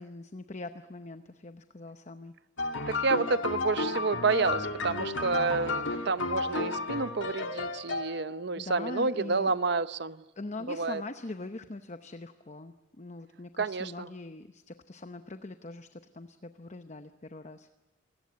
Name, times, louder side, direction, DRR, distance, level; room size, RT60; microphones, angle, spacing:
voice 1, 0.0-2.3 8.5-9.5 10.4-17.7, left 2 dB, 35° left, 9 dB, 0.8 m, -42 dB
sound 1, 2.6-8.4, left 3 dB, 75° left, 2.0 m, -33 dB
voice 2, 2.9-10.2 10.7-11.0 13.6-14.1, right 4 dB, 60° right, 14 dB, 0.8 m, -29 dB
27.5 x 18.0 x 9.6 m, 1.1 s
head